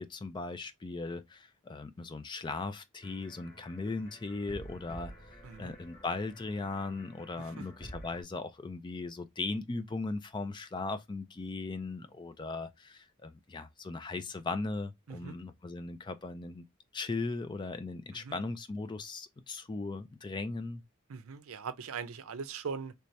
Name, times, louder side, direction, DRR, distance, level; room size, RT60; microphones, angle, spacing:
voice 1, 0.0-16.7 16.9-20.8, left 3 dB, 20° left, 0.3 m, -38 dB
sound 1, 3.0-8.2, equal, 45° left, 1.9 m, -50 dB
voice 2, 5.4-5.7 7.4-7.6 15.1-15.3 18.1-18.4 21.1-22.9, right 5 dB, 85° right, 0.5 m, -41 dB
3.3 x 2.7 x 3.2 m
head